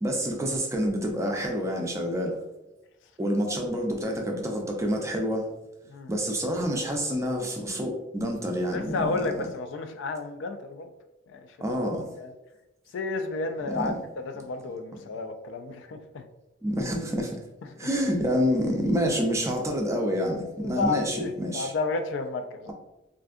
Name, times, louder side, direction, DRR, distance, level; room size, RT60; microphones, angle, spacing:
voice 1, 0.0-2.4 3.2-5.5 6.1-9.5 11.6-12.1 13.7-14.0 16.6-17.4 17.8-21.7 22.7-22.8, equal, 15° right, 1 dB, 0.4 m, -28 dB
voice 2, 8.7-10.9 11.3-11.4 11.7-11.8 12.2-12.3 12.9-13.9 14.2-16.2 20.6-22.7, left 3 dB, 65° left, 7 dB, 0.3 m, -31 dB
3.4 x 2.5 x 2.4 m, 0.99 s
head